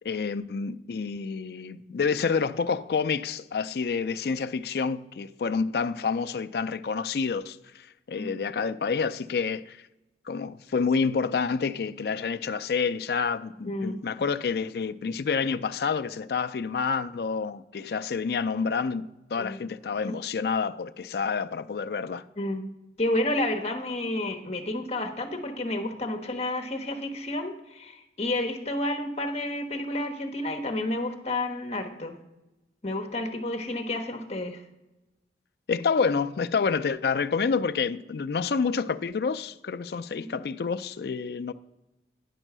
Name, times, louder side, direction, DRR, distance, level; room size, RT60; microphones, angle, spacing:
voice 1, 0.0-9.8 10.3-22.2 35.7-41.5, left 5 dB, 60° left, 0.4 m, -28 dB
voice 2, 13.7-14.0 19.4-19.6 20.1-20.2 22.4-22.6 23.0-32.1 32.8-34.6 40.1-40.3, left 1 dB, 35° left, 1.0 m, -30 dB
10.0 x 5.4 x 6.0 m
head